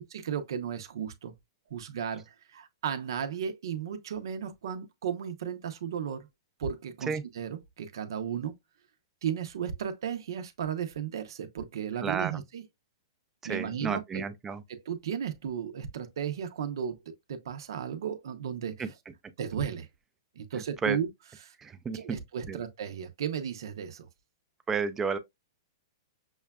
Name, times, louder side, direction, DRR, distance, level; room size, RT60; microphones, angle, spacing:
voice 1, 0.0-1.3 1.7-6.3 6.6-8.5 9.2-12.6 13.4-14.2 14.7-18.9 19.4-19.9 20.4-21.1 21.4-21.5 21.9-24.1, right 8 dB, 75° right, 0.7 m, -35 dB
voice 2, 12.0-12.4 13.5-14.6 18.8-18.9 20.5-21.0 21.6-22.2 22.5-22.6 24.7-25.2, right 5 dB, 15° right, 0.4 m, -32 dB
6.3 x 2.2 x 2.3 m
hypercardioid pair, 140°, 2 cm